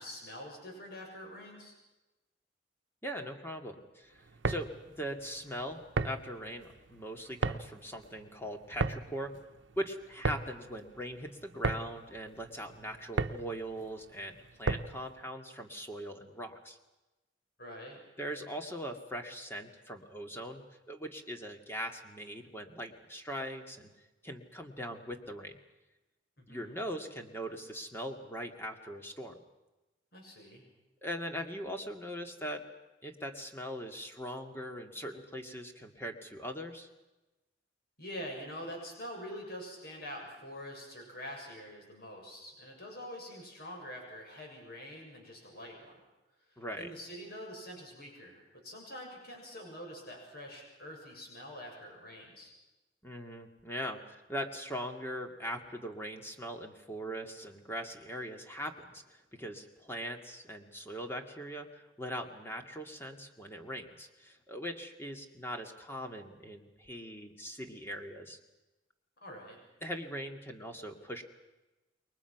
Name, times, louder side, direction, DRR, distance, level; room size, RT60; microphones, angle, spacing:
voice 1, 0.0-1.7 17.6-18.0 26.4-26.8 30.1-30.6 38.0-46.0 46.5-52.5 69.2-69.6, equal, 55° left, 1 dB, 6.9 m, -45 dB
voice 2, 3.0-9.3 9.8-16.8 18.2-23.9 24.2-25.6 26.5-29.4 31.0-32.6 33.0-36.9 46.6-46.9 53.0-68.4 69.8-71.2, equal, 10° left, 4 dB, 2.3 m, -41 dB
sound 1, 4.2-15.1, right 3 dB, 75° right, 0.9 m, -36 dB
29.0 x 22.5 x 6.1 m, 1.0 s
head